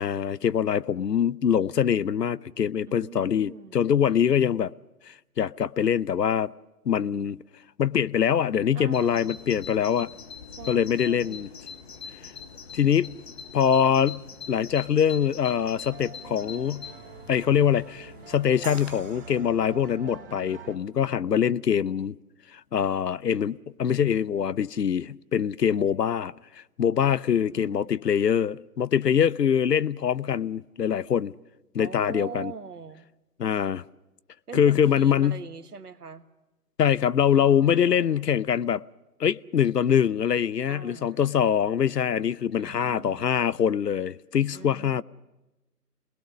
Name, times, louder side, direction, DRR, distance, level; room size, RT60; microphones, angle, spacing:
voice 1, 0.0-4.7 5.1-6.5 6.9-7.4 7.8-10.1 10.7-11.5 12.7-13.1 13.5-14.2 14.5-16.9 17.3-22.2 22.5-31.3 31.7-32.5 33.4-33.8 34.5-35.4 36.8-38.8 39.2-45.0, left 8 dB, 80° left, 0.7 m, -24 dB
voice 2, 2.9-3.9 8.7-9.4 10.6-11.5 27.3-28.0 31.8-33.1 34.5-36.2 37.3-38.3 40.7-41.3 42.5-43.4 44.5-45.0, right 6 dB, 70° right, 1.6 m, -42 dB
Bird vocalization bird call bird song, 8.9-19.0, left 6 dB, 40° left, 1.0 m, -43 dB
sound 1, 15.6-20.8, right 6 dB, 35° right, 1.3 m, -46 dB
sound 2, 18.6-21.7, right 7 dB, 50° right, 1.0 m, -47 dB
27.0 x 20.0 x 6.3 m
figure-of-eight pair, 145°, 48 cm